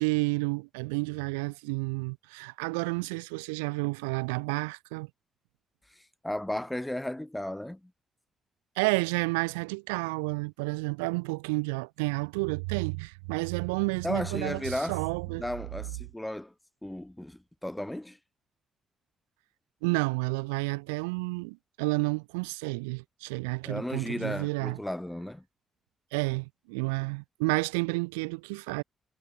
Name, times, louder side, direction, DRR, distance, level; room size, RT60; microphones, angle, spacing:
voice 1, 0.0-5.1 8.8-15.4 19.8-24.8 26.1-28.8, right 30 dB, 90° right, 3.0 m, -30 dB
voice 2, 5.9-7.9 14.0-15.0 15.3-16.5 16.8-18.2 23.6-25.4, left 1 dB, 10° left, 4.4 m, -35 dB
hypercardioid pair, 40°, 0 cm